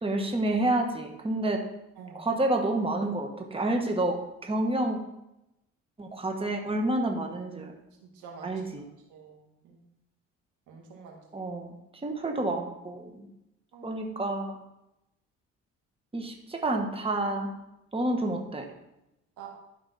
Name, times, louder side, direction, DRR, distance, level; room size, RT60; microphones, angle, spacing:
voice 1, 0.0-1.6 2.1-5.0 6.0-7.7 8.4-8.8 11.3-11.7 12.0-13.3 13.8-14.6 16.1-17.5 17.9-18.7, right 2 dB, 20° right, 2 dB, 1.4 m, -29 dB
voice 2, 8.1-8.5 9.1-9.4 9.6-9.8 10.7-11.2 13.7-14.0 19.4-19.5, right 6 dB, 90° right, 0 dB, 2.0 m, -46 dB
12.0 x 5.3 x 4.2 m, 0.88 s
cardioid pair, 90°, 30 cm